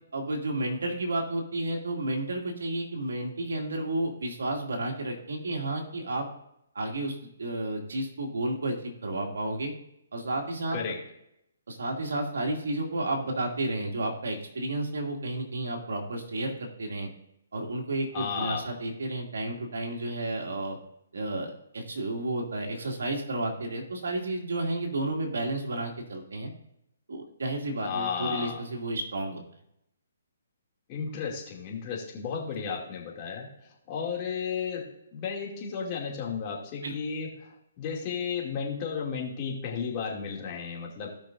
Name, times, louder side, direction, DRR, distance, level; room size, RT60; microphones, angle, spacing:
voice 1, 0.1-6.3 6.7-9.7 10.1-10.8 11.7-17.1 17.5-20.8 21.1-26.5 27.1-29.4 36.8-36.9, right 2 dB, 80° right, 1 dB, 2.4 m, -32 dB
voice 2, 18.1-18.7 27.8-28.6 30.9-34.9 35.1-41.1, left 6 dB, 30° left, -2 dB, 2.5 m, -33 dB
17.0 x 5.9 x 2.6 m, 0.78 s
hypercardioid pair, 150°, 0 cm